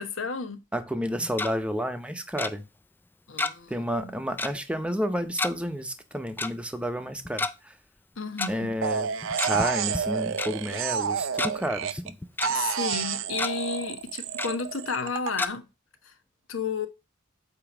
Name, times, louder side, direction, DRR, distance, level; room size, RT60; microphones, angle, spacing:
voice 1, 0.0-0.6 3.3-3.7 4.0-4.1 8.2-8.7 12.6-15.7 16.5-16.9, left 5 dB, 85° left, 1.0 m, -32 dB
voice 2, 0.7-2.6 3.7-7.7 8.5-9.1 9.4-12.2, equal, 5° right, 0.7 m, -30 dB
Tick-tock, 1.1-1.5 2.4-2.5 3.4-3.7 4.0-4.1 4.4-4.6 5.4-5.5 6.4-6.5 7.3-7.5 8.4-8.5 9.2-9.7 9.9-10.0 10.4-10.5 11.1-11.5 12.0-12.5 12.9-13.0 13.3-13.5 14.4-14.5 15.4-15.5, left 3 dB, 10° left, 0.3 m, -29 dB
sound 1, 8.8-12.1 12.4-15.3, right 7 dB, 80° right, 0.5 m, -29 dB
8.5 x 2.9 x 5.9 m
head